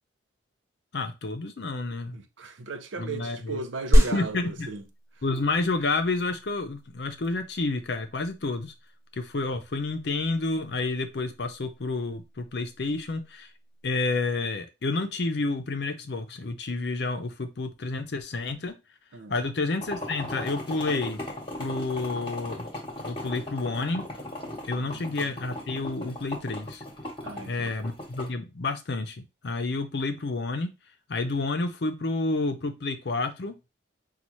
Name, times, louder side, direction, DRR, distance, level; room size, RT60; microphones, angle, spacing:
voice 1, 0.9-2.2 3.0-3.6 4.0-4.7 5.2-8.7 9.1-13.5 13.8-18.7 19.3-21.2 21.6-22.7 23.0-24.0 24.7-26.8 27.5-30.7 31.1-33.5, left 3 dB, 60° left, 0.6 m, -30 dB
voice 2, 2.1-4.8 19.1-19.3 24.8-25.3 27.2-27.9, right 4 dB, 85° right, 0.6 m, -36 dB
sound 1, 3.9-13.9, equal, 15° right, 0.7 m, -29 dB
sound 2, 19.8-28.3, left 1 dB, 25° left, 1.1 m, -37 dB
5.4 x 2.4 x 3.0 m
head